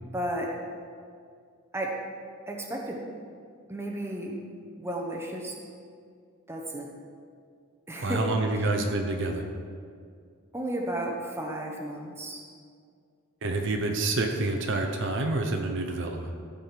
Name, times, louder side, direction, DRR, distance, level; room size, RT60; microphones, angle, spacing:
voice 1, 0.1-0.5 1.7-1.9 2.5-3.0 3.7-4.4 4.8-5.5 6.5-6.9 7.9-8.2 8.5-8.7 10.5-12.4, right 1 dB, 10° right, -1 dB, 1.0 m, -33 dB
voice 2, 8.0-9.4 13.4-16.3, right 2 dB, 55° right, 3 dB, 0.8 m, -28 dB
14.0 x 5.1 x 5.9 m, 2.2 s
head